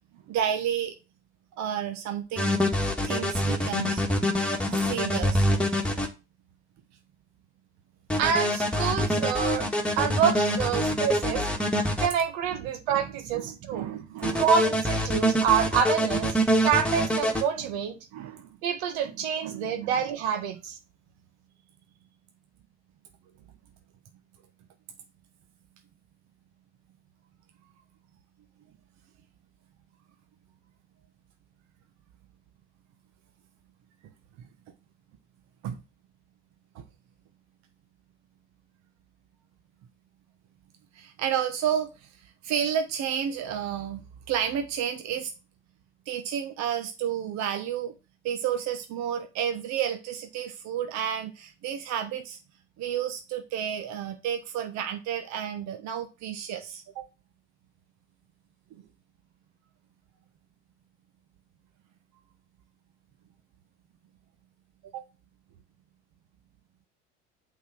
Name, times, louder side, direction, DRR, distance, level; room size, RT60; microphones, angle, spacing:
voice 1, 0.3-0.9 1.6-2.5 3.0-5.5 10.7-11.2 12.5-14.5 17.6-17.7 18.1-18.5 19.0-19.1 19.4-20.1 35.6-35.8 36.7-36.8 40.9-42.1 42.4-45.3 46.1-47.9 48.2-52.4 52.8-57.0 64.9-65.0, right 9 dB, 55° right, 1.3 m, -31 dB
sound 1, 2.4-6.1 8.1-12.1 14.2-17.4, equal, 5° left, 1.9 m, -25 dB
voice 2, 8.2-9.7 10.0-11.4 12.0-13.8 14.4-16.3 16.6-18.0 18.6-20.7, right 7 dB, 70° right, 1.6 m, -27 dB
8.4 x 4.2 x 6.2 m
hypercardioid pair, 70°, 33 cm